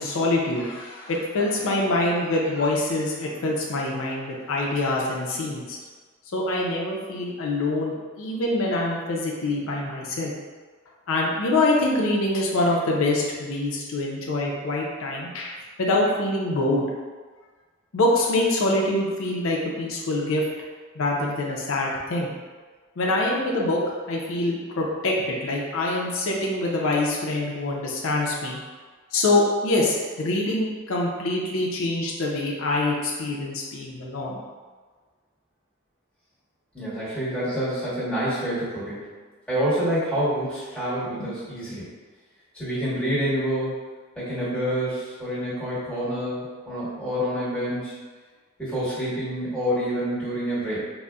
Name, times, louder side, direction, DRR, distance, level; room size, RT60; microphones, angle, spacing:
voice 1, 0.0-5.8 6.3-10.3 11.1-16.9 17.9-20.4 21.0-22.3 23.0-23.8 24.1-28.6 29.1-34.4, left 2 dB, 85° left, -2 dB, 0.5 m, -25 dB
voice 2, 36.7-39.1 39.5-41.9 42.5-43.8 44.1-48.0 48.6-50.9, equal, 5° left, -12 dB, 1.2 m, -27 dB
3.8 x 2.0 x 2.3 m, 1.4 s
head